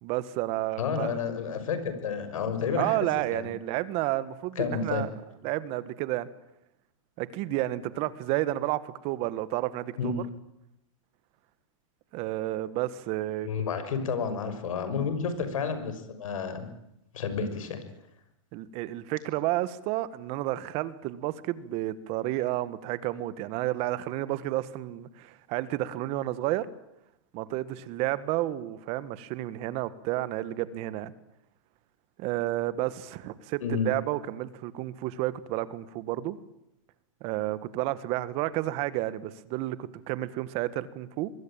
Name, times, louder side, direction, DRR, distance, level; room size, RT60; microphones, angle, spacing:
voice 1, 0.0-1.2 2.7-5.1 5.4-6.3 7.2-10.1 12.1-13.5 18.5-26.7 27.3-31.1 32.2-36.4 37.2-41.3, right 15 dB, 35° right, 16 dB, 1.5 m, -31 dB
voice 2, 0.8-3.0 3.3-3.5 4.6-5.0 10.0-10.3 13.4-16.7 17.1-17.8 33.6-33.9, left 6 dB, 75° left, 10 dB, 6.3 m, -30 dB
25.5 x 21.0 x 9.0 m, 0.83 s
hypercardioid pair, 145°, 17 cm